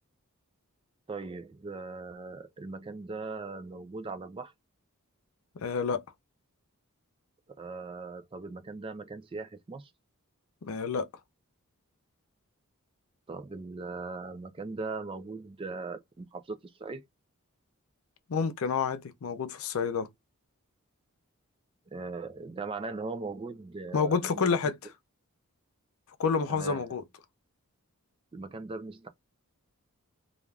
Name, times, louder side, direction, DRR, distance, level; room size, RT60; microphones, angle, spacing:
voice 1, 1.1-4.5 7.5-9.9 13.3-17.0 21.9-24.4 26.5-26.8 28.3-29.1, right 3 dB, 25° right, 0.3 m, -39 dB
voice 2, 5.6-6.0 10.6-11.1 18.3-20.1 23.9-24.7 26.2-27.0, left 5 dB, 70° left, 0.5 m, -29 dB
3.2 x 2.4 x 2.3 m
head